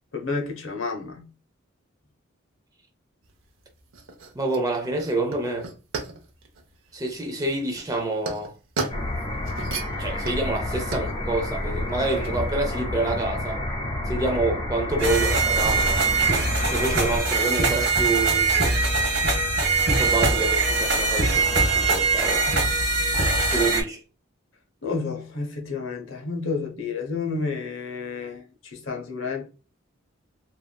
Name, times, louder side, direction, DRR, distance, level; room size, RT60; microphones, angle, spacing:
voice 1, 0.1-1.3 24.8-29.5, left 4 dB, 75° left, 0.7 m, -30 dB
sound 1, 3.2-12.5, right 4 dB, 80° right, 0.7 m, -37 dB
voice 2, 4.3-5.7 6.9-8.5 10.0-13.7 14.1-16.0 16.7-18.5 20.0-22.5 23.5-24.0, right 2 dB, 15° right, 0.5 m, -27 dB
sound 2, 8.9-17.2, left 1 dB, 25° left, 0.9 m, -29 dB
sound 3, 15.0-23.8, right 3 dB, 55° right, 0.9 m, -22 dB
3.3 x 2.5 x 2.2 m
head